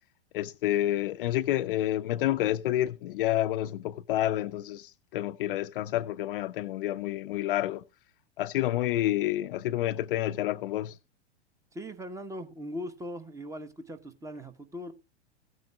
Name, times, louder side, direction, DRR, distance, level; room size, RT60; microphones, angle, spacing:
voice 1, 0.3-7.8 8.4-11.0, left 14 dB, 55° left, 0.7 m, -29 dB
voice 2, 11.7-14.9, equal, 10° right, 1.1 m, -40 dB
16.0 x 9.3 x 2.3 m
figure-of-eight pair, 95°, 33 cm